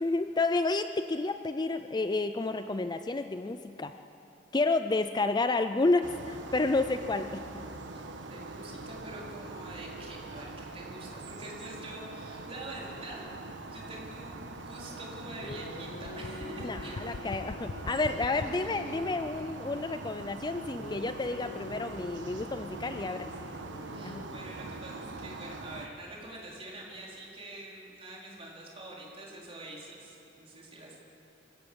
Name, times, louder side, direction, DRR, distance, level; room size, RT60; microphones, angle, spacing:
voice 1, 0.0-3.9 4.5-7.4 16.6-23.3 24.0-24.2, left 3 dB, 25° left, 9 dB, 0.5 m, -30 dB
sound 1, 6.0-25.9, right 2 dB, 90° right, 1.3 m, -43 dB
voice 2, 7.9-13.2 13.7-17.1 22.9-23.6 23.9-31.0, right 1 dB, 30° right, -4 dB, 4.4 m, -46 dB
sound 2, 11.5-18.5, left 3 dB, 80° left, 0.7 m, -43 dB
sound 3, 15.3-19.5 20.8-24.8, left 3 dB, 55° left, 1.0 m, -46 dB
26.0 x 16.0 x 7.1 m, 2.9 s
head